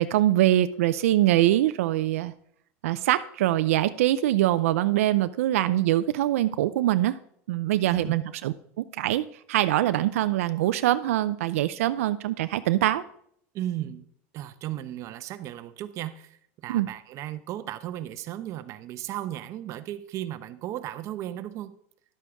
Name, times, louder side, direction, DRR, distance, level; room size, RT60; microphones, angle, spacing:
voice 1, 0.0-2.3 2.8-7.2 7.5-13.0 16.7-16.9, right 14 dB, 85° right, 11 dB, 0.5 m, -23 dB
voice 2, 13.5-14.1 14.3-21.7, right 13 dB, 45° right, 11 dB, 0.7 m, -35 dB
11.5 x 8.4 x 3.5 m, 0.66 s
supercardioid pair, 130°, 7 cm